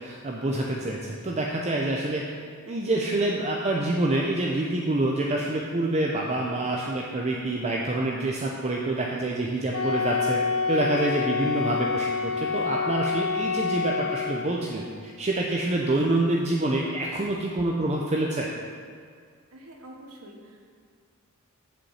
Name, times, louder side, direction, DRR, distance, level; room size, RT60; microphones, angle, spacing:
voice 1, 0.0-2.2 2.7-10.4 10.7-18.5, right 2 dB, 30° right, -2 dB, 0.6 m, -27 dB
voice 2, 2.7-3.1 19.5-20.6, right 1 dB, 80° right, 1 dB, 1.4 m, -46 dB
Wind instrument woodwind instrument, 9.7-14.6, left 5 dB, 75° left, 0.9 m, -27 dB
7.2 x 5.4 x 7.3 m, 2.1 s
head